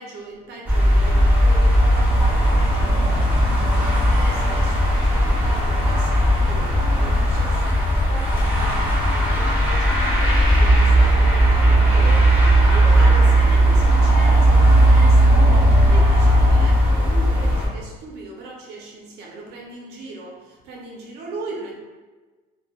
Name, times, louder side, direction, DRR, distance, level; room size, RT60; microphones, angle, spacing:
voice 1, 0.0-9.0 9.3-21.8, right 2 dB, 80° right, -1 dB, 0.7 m, -38 dB
sound 1, 0.7-17.7, right 1 dB, 10° right, 0.9 m, -16 dB
3.1 x 2.3 x 2.3 m, 1.3 s
cardioid pair, 110°, 17 cm